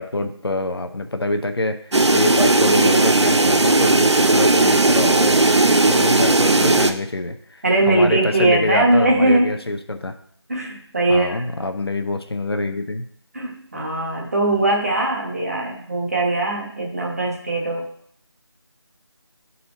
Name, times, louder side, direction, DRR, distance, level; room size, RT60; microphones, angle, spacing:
voice 1, 0.0-10.1 11.1-13.0, left 2 dB, 65° left, 7 dB, 0.8 m, -26 dB
sound 1, 1.9-6.9, right 2 dB, 85° right, 0.7 m, -16 dB
voice 2, 6.4-7.0 7.6-9.5 10.5-11.4 13.3-17.9, right 2 dB, 35° right, -1 dB, 1.3 m, -20 dB
11.5 x 4.2 x 2.9 m, 0.64 s
figure-of-eight pair, 165°, 14 cm